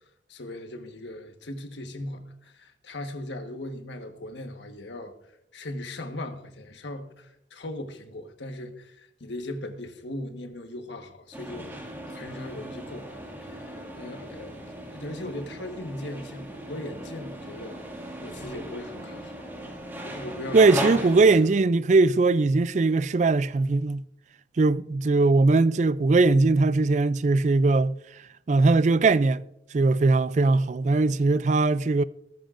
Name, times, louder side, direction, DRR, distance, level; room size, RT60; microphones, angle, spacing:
voice 1, 0.3-5.1 5.5-14.5 14.9-19.8 20.0-21.2, left 1 dB, 80° left, 1.4 m, -39 dB
sound 1, 11.3-21.4, right 1 dB, 10° right, 2.1 m, -37 dB
voice 2, 20.5-24.0 24.6-29.4 29.7-32.0, right 3 dB, 40° right, 0.3 m, -20 dB
18.5 x 14.0 x 2.5 m
head